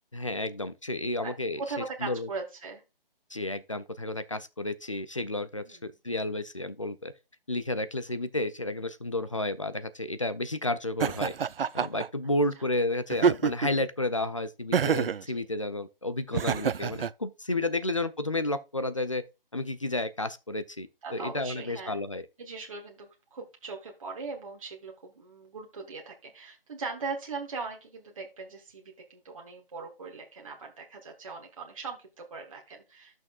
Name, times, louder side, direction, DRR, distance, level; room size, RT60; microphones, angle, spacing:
voice 1, 0.1-1.6 2.0-2.3 3.3-7.1 7.5-11.3 11.7-19.2 19.5-22.3, left 2 dB, 35° left, 0.4 m, -31 dB
voice 2, 1.7-2.8 5.7-5.8 15.3-15.4 21.0-22.0 22.4-33.2, right 4 dB, 35° right, 1.3 m, -40 dB
Laughter, 11.0-12.1 13.1-13.8 14.7-15.2 16.3-17.1, right 7 dB, 75° right, 0.4 m, -26 dB
13.5 x 6.1 x 2.3 m
figure-of-eight pair, 160°, 29 cm